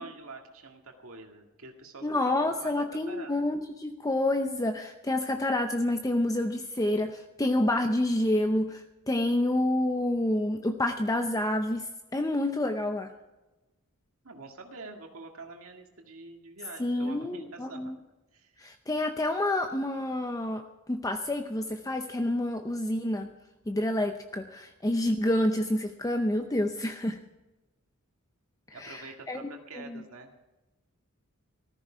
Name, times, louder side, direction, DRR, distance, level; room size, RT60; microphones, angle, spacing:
voice 1, 0.0-3.3 14.2-17.9 18.3-18.5 28.7-30.3, right 3 dB, 70° right, 2 dB, 2.0 m, -46 dB
voice 2, 2.0-13.1 16.8-18.0 18.6-20.6 20.9-23.3 23.7-27.2 28.8-29.5 29.7-30.0, left 1 dB, 15° left, 6 dB, 0.7 m, -28 dB
15.0 x 14.0 x 5.0 m, 1.1 s
head